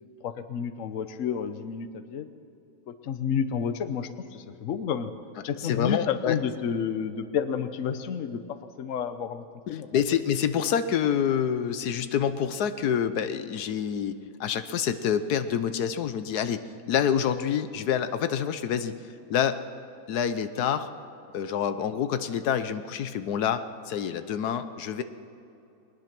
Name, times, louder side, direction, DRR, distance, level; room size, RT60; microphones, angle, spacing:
voice 1, 0.2-2.3 2.9-5.1 5.4-9.9, left 7 dB, 60° left, 10 dB, 1.2 m, -30 dB
voice 2, 5.6-6.3 9.7-16.6 16.9-18.9 19.3-19.6 20.1-20.9 21.3-25.0, left 8 dB, 90° left, 11 dB, 1.4 m, -27 dB
22.0 x 20.0 x 6.0 m, 2.8 s
omnidirectional pair, 1.6 m